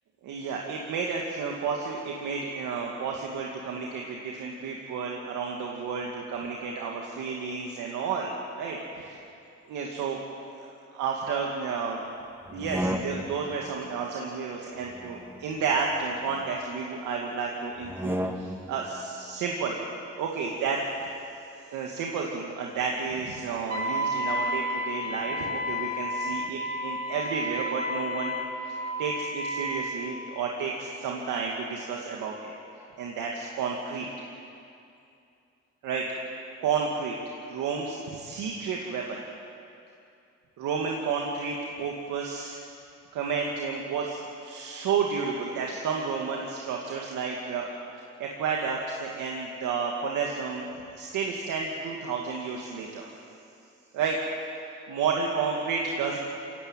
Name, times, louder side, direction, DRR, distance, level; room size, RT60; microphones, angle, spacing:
voice 1, 0.2-8.3 8.6-9.2 9.7-10.2 10.5-10.7 10.9-12.0 12.5-19.8 20.2-20.8 21.7-28.3 28.7-32.5 33.0-34.1 35.8-36.0 36.6-37.1 37.5-39.2 40.6-42.6 43.1-47.7 48.2-50.7 51.0-53.1 53.9-54.2 54.9-56.2, right 5 dB, 90° right, -1 dB, 2.2 m, -31 dB
sound 1, 12.4-13.5 14.8-16.5 17.8-18.8, equal, 10° right, 1.7 m, -34 dB
Wind instrument woodwind instrument, 23.7-29.9, equal, 55° right, 3.4 m, -31 dB
22.5 x 17.0 x 9.1 m, 2.6 s
cardioid pair, 90°, 30 cm